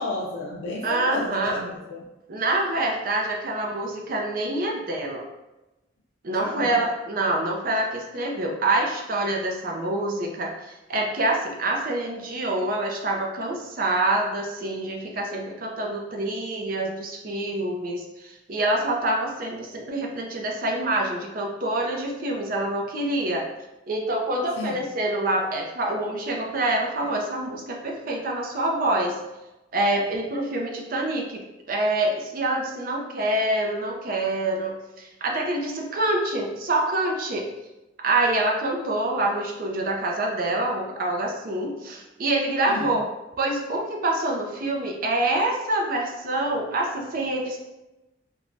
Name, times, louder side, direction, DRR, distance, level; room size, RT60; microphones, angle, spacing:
voice 1, 0.0-2.0 6.4-6.9 24.6-24.9 42.7-43.0, left 2 dB, 80° left, -3 dB, 0.4 m, -32 dB
voice 2, 0.8-1.6 2.3-5.2 6.2-23.5 23.9-29.2 29.7-37.5 38.0-43.1 43.4-47.6, right 2 dB, 50° right, 1 dB, 0.4 m, -26 dB
3.1 x 2.1 x 2.5 m, 1.0 s
head